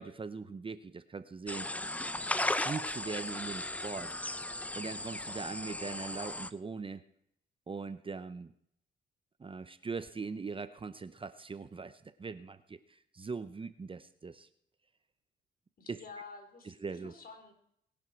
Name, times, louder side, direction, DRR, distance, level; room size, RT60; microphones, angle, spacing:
voice 1, 0.0-1.7 2.6-4.1 4.8-7.0 7.7-8.5 9.4-14.5 15.9-16.0 16.7-17.1, right 4 dB, 25° right, 12 dB, 0.8 m, -41 dB
sound 1, 1.5-6.5, left 1 dB, 5° left, 0.7 m, -36 dB
voice 2, 15.8-17.5, left 4 dB, 45° left, 5 dB, 4.0 m, -50 dB
21.0 x 11.5 x 4.5 m, 0.70 s
cardioid pair, 90°, 20 cm